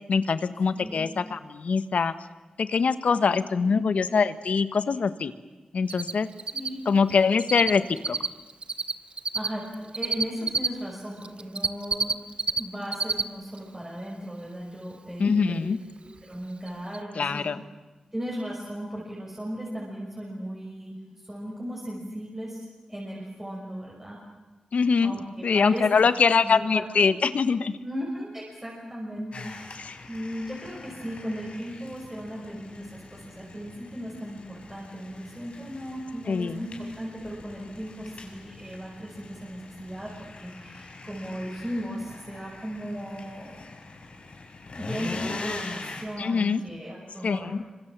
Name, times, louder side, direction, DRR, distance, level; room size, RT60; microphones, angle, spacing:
voice 1, 0.1-2.1 2.6-5.3 5.7-6.3 6.8-8.2 15.2-15.8 17.2-17.6 24.7-25.1 25.4-27.8 29.8-30.0 36.3-36.7 46.2-46.6 47.2-47.6, left 5 dB, 80° left, 13 dB, 1.3 m, -23 dB
voice 2, 0.7-1.1 3.6-3.8 6.5-6.8 9.3-12.2 12.5-15.7 16.0-17.5 18.1-21.0 21.2-24.2 25.0-26.1 26.4-26.9 27.8-43.6 44.7-47.5, equal, 15° right, -4 dB, 6.1 m, -37 dB
Cricket, 5.9-6.1 6.4-7.7 8.0-10.7 11.2-12.6 12.9-13.2 13.6-13.7 16.2-16.3 16.7-16.8 16.9-17.0, right 4 dB, 50° right, 1.0 m, -27 dB
sound 1, 29.3-46.0, left 3 dB, 60° left, 5.4 m, -42 dB
27.0 x 25.5 x 7.4 m, 1.2 s
wide cardioid pair, 100°, 2 cm